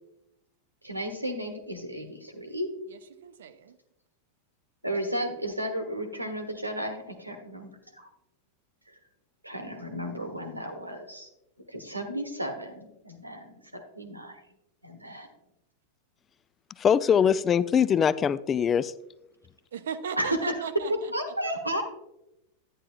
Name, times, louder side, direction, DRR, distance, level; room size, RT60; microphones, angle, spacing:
voice 1, 0.8-2.7 4.8-8.1 9.4-11.3 11.7-14.4 14.8-15.3 20.2-20.5 20.9-21.8, equal, 85° right, 5 dB, 1.1 m, -33 dB
voice 2, 2.9-3.8 19.7-21.1, right 7 dB, 60° right, 11 dB, 0.6 m, -37 dB
voice 3, 16.8-18.9, left 7 dB, 25° left, 18 dB, 0.3 m, -22 dB
11.5 x 9.5 x 2.2 m, 0.89 s
figure-of-eight pair, 90°, 0 cm